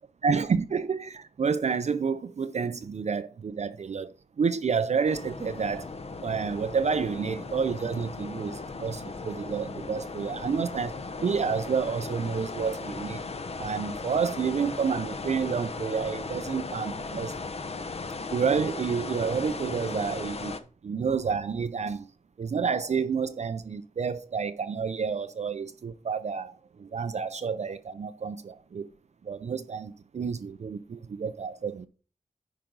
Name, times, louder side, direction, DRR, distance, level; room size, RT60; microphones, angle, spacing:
voice 1, 0.2-5.9 6.2-13.3 13.6-17.3 18.3-20.5 20.8-22.1 22.4-28.9 29.2-31.9, right 6 dB, 50° right, 0.5 m, -29 dB
sound 1, 5.0-20.6, left 3 dB, 45° left, 0.8 m, -37 dB
10.0 x 5.1 x 3.9 m
wide cardioid pair, 125°, 15 cm